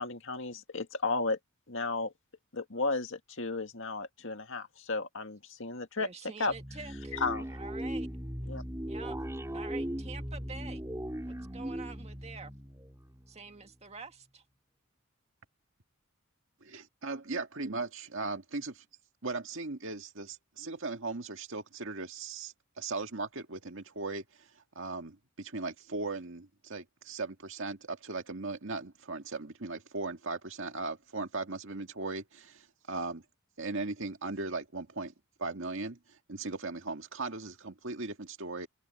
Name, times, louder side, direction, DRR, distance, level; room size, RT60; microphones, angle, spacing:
voice 1, 0.0-1.4 1.7-2.1 2.5-6.1 6.4-6.5 7.1-7.5 8.5-8.6, left 3 dB, 60° left, 2.1 m, -33 dB
voice 2, 6.0-7.2 7.5-8.1 8.9-9.2 9.5-10.8 11.2-12.5 13.3-14.4, right 4 dB, 30° right, 1.9 m, -47 dB
sound 1, 6.5-13.7, equal, 15° right, 2.7 m, -38 dB
voice 3, 16.6-18.8 19.2-24.5 24.8-33.2 33.6-35.1 35.4-36.0 36.3-38.7, right 3 dB, 60° right, 2.1 m, -38 dB
open air
head